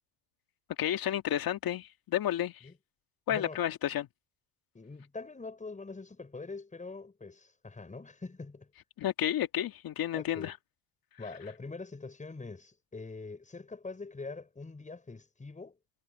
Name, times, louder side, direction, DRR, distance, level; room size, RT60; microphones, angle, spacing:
voice 1, 0.8-2.6 3.3-4.1 9.0-10.5, left 11 dB, 45° left, 2.0 m, -31 dB
voice 2, 3.3-3.6 4.7-8.7 10.1-10.5 11.2-15.8, left 3 dB, 15° left, 5.6 m, -44 dB
supercardioid pair, 100°, 48 cm